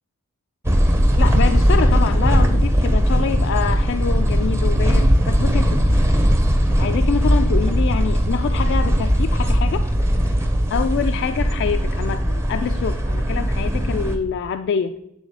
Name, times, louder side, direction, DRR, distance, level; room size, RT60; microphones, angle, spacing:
sound 1, 0.6-14.2, equal, 10° right, 0.6 m, -18 dB
voice 1, 1.2-5.8 6.8-9.9 10.7-15.0, left 6 dB, 55° left, 8 dB, 0.3 m, -25 dB
8.8 x 3.8 x 3.4 m, 0.80 s
head